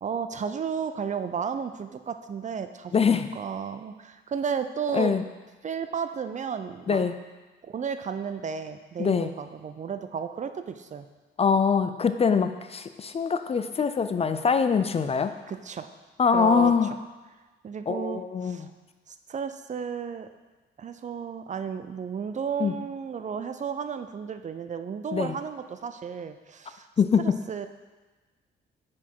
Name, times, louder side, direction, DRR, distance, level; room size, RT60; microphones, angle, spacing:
voice 1, 0.0-5.2 5.6-7.0 7.6-11.1 15.5-15.9 16.3-16.7 17.6-18.7 19.1-20.3 20.8-26.9 27.2-27.7, right 6 dB, 40° right, 9 dB, 0.5 m, -33 dB
voice 2, 2.9-3.3 4.9-5.2 6.9-7.2 9.0-9.3 11.4-15.3 16.2-16.9 17.9-18.7 22.6-22.7 25.1-25.3 27.0-27.4, left 6 dB, 30° left, 10 dB, 0.4 m, -23 dB
6.1 x 6.1 x 4.5 m, 1.2 s
cardioid pair, 90°, 20 cm